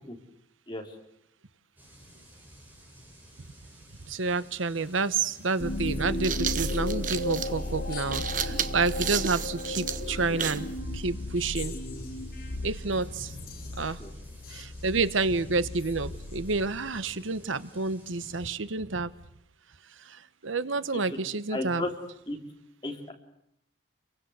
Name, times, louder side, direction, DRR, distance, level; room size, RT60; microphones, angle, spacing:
sound 1, 1.8-18.5, equal, 10° right, 7.4 m, -52 dB
voice 1, 4.1-10.7 10.9-11.7 12.6-13.3 13.8-14.0 14.5-19.1 20.0-21.8, right 4 dB, 85° right, 15 dB, 1.0 m, -29 dB
sound 2, 4.8-4.9 5.9-10.7, right 8 dB, 40° right, 1.1 m, -32 dB
sound 3, 5.6-17.2, left 1 dB, 50° left, 2.8 m, -35 dB
voice 2, 21.5-21.9 22.3-22.4 22.8-23.1, left 2 dB, 25° left, 2 dB, 3.7 m, -33 dB
29.5 x 23.0 x 8.1 m, 0.77 s
head